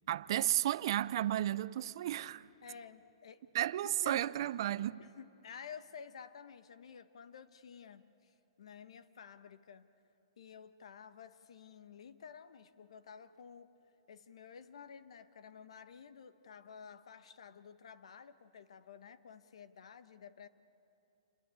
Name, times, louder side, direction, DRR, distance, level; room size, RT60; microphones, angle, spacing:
voice 1, 0.1-2.4 3.5-5.0, right 13 dB, 50° right, 0.5 m, -33 dB
voice 2, 2.6-3.4 3.8-4.2 5.0-9.9 10.4-13.7 14.1-20.5, left 7 dB, 75° left, 1.2 m, -52 dB
28.0 x 21.5 x 8.5 m
hypercardioid pair, 150°, 3 cm